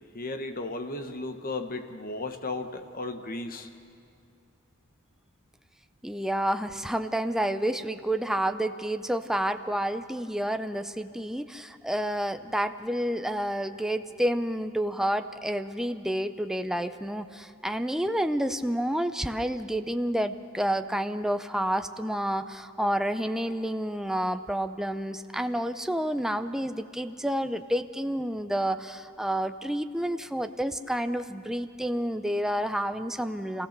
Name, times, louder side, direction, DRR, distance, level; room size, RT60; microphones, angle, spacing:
voice 1, 0.1-3.7, left 2 dB, 45° left, 7 dB, 1.2 m, -35 dB
voice 2, 6.0-33.7, right 1 dB, ahead, 8 dB, 0.5 m, -29 dB
26.5 x 16.0 x 6.7 m, 2.5 s
head